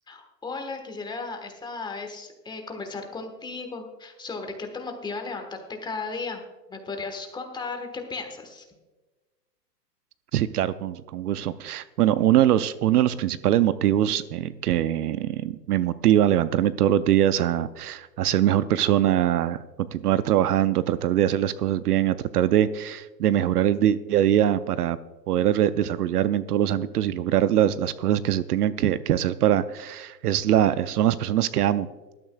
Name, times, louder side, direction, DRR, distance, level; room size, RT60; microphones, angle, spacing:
voice 1, 0.1-8.6, left 4 dB, 10° left, 4 dB, 1.3 m, -35 dB
voice 2, 10.3-25.0 25.3-31.9, right 11 dB, 65° right, 15 dB, 0.6 m, -22 dB
19.0 x 12.5 x 2.3 m, 1.2 s
hypercardioid pair, 130°, 50 cm